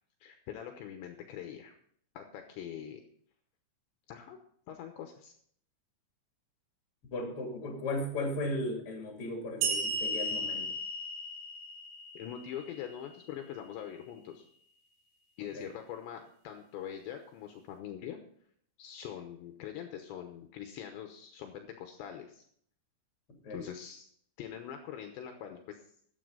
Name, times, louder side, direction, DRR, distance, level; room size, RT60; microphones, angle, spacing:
voice 1, 0.2-1.7 2.2-3.0 4.1-4.4 4.7-5.3 12.1-14.4 15.4-18.2 18.8-22.4 23.5-24.1 24.4-25.8, left 9 dB, 75° left, 5 dB, 3.0 m, -43 dB
voice 2, 7.1-10.7 15.5-15.7 23.4-23.6, left 1 dB, 35° left, 1 dB, 3.0 m, -36 dB
sound 1, 9.6-13.0, right 1 dB, 90° right, 4.4 m, -35 dB
14.0 x 9.6 x 3.9 m, 0.63 s
omnidirectional pair, 5.6 m